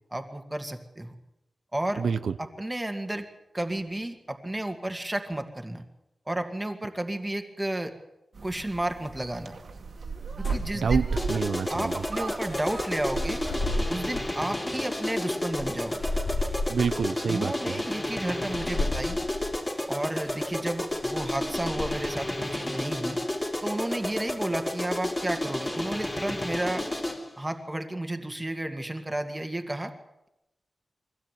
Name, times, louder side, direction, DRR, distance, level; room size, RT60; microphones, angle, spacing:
voice 1, 0.1-1.1 1.7-2.0 2.4-3.3 3.5-5.8 6.3-7.9 8.4-9.6 10.4-11.0 11.7-13.4 13.9-16.0 17.2-19.2 19.9-23.2 23.6-26.9 27.4-29.9, right 1 dB, 15° right, 6 dB, 2.3 m, -32 dB
voice 2, 2.0-2.4 10.7-12.0 16.7-17.8, right 6 dB, 85° right, 10 dB, 0.9 m, -28 dB
sound 1, 8.3-13.9, right 4 dB, 65° right, 2.3 m, -35 dB
sound 2, 10.4-11.6 12.5-14.4 14.9-17.1 17.7-17.9 18.5-19.6 20.2-20.5 20.9-22.2, left 2 dB, 45° left, 2.6 m, -34 dB
sound 3, 11.2-27.3, left 1 dB, 20° left, 3.7 m, -32 dB
24.0 x 16.5 x 9.4 m, 0.89 s
wide cardioid pair, 140°, 0 cm